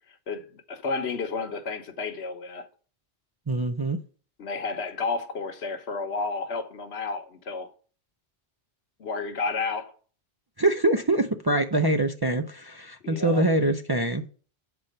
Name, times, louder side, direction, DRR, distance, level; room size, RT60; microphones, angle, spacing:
voice 1, 0.1-2.7 4.4-7.7 9.0-9.9 13.0-13.5, left 4 dB, 75° left, 1.3 m, -31 dB
voice 2, 3.5-4.0 10.6-14.2, right 2 dB, 30° right, 0.5 m, -24 dB
8.2 x 4.3 x 6.5 m
omnidirectional pair, 1.1 m